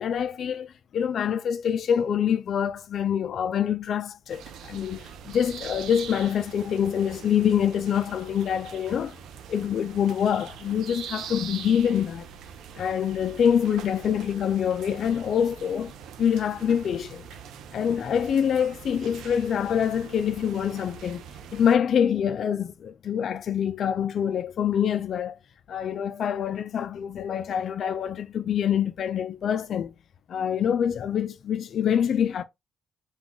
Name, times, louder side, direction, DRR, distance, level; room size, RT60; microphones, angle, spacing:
voice 1, 0.0-9.2 9.5-12.3 12.8-17.2 17.7-21.3 21.5-25.4 25.7-29.9 30.3-32.4, left 8 dB, 60° left, 0.3 m, -25 dB
sound 1, 4.3-21.8, right 8 dB, 80° right, 0.6 m, -43 dB
4.1 x 2.3 x 4.5 m
cardioid pair, 90°, 0 cm